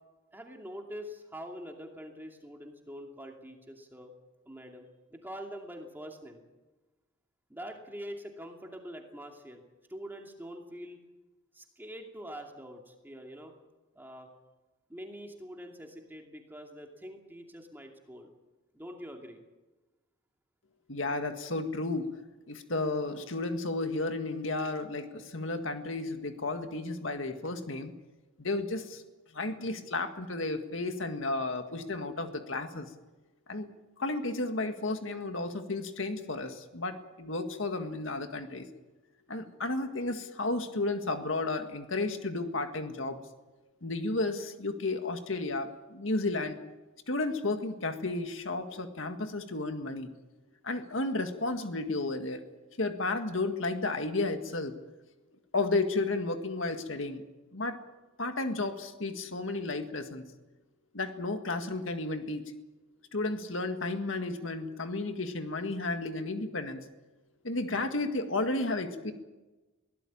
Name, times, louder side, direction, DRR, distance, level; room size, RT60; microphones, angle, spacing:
voice 1, 0.3-4.1 4.5-6.4 7.5-9.6 9.9-11.0 11.5-13.5 13.9-14.3 14.9-18.3 18.7-19.4, equal, 10° right, 2 dB, 2.5 m, -44 dB
voice 2, 20.9-22.1 22.5-27.9 28.4-29.0 29.3-32.9 33.5-33.7 34.0-38.7 39.3-43.2 43.8-46.6 47.1-50.1 50.6-52.4 52.8-54.7 55.5-57.2 57.5-57.8 58.2-60.2 60.9-62.5 63.1-66.8 67.4-69.1, left 2 dB, 70° left, 7 dB, 1.9 m, -33 dB
22.5 x 17.5 x 8.8 m, 1.1 s
head